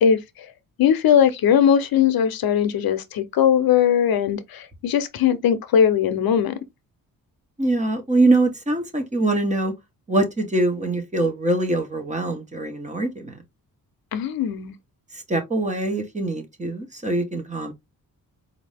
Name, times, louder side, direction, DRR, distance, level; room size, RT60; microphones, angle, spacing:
voice 1, 0.8-6.5 14.1-14.7, left 8 dB, 75° left, 0.7 m, -19 dB
voice 2, 7.6-9.7 10.1-13.4 15.3-17.7, right 2 dB, 20° right, 1.1 m, -23 dB
4.4 x 2.7 x 3.4 m
wide cardioid pair, 155°, 36 cm